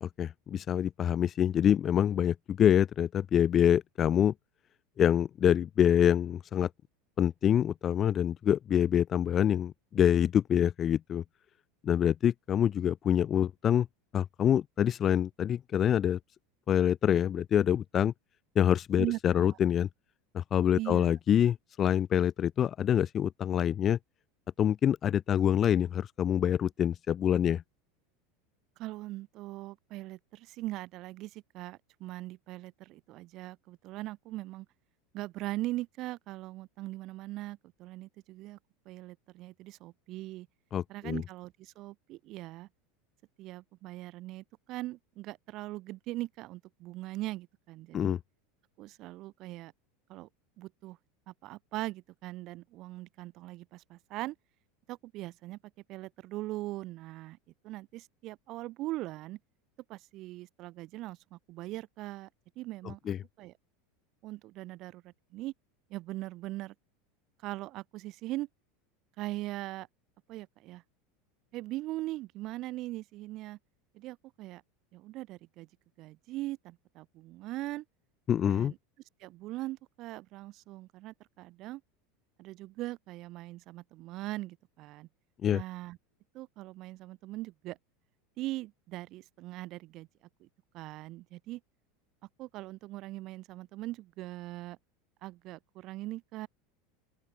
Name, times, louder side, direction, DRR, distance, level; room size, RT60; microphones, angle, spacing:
voice 1, 0.0-4.3 5.0-6.7 7.2-11.2 11.8-13.9 14.1-16.2 16.7-18.1 18.6-19.9 20.3-24.0 24.6-27.6 40.7-41.2 47.9-48.2 62.9-63.2 78.3-78.7 85.4-85.6, left 9 dB, 25° left, 0.4 m, -26 dB
voice 2, 19.0-19.6 20.7-21.1 28.8-34.7 35.1-38.6 38.9-40.5 40.9-42.7 43.4-48.2 48.8-49.7 50.1-50.3 50.6-51.0 51.3-54.4 54.9-55.6 55.9-57.4 57.6-59.4 59.9-62.3 62.6-63.5 64.2-65.5 65.9-66.7 67.4-68.5 69.2-69.9 70.3-70.8 71.5-73.6 73.9-74.6 74.9-75.7 76.0-77.8 78.4-78.8 79.2-81.8 82.4-85.1 85.5-86.0 86.3-87.8 88.4-90.1 90.4-90.5 90.7-91.6 92.4-94.8 95.2-96.5, right 17 dB, 40° right, 3.7 m, -40 dB
open air
supercardioid pair, 155°, 0 cm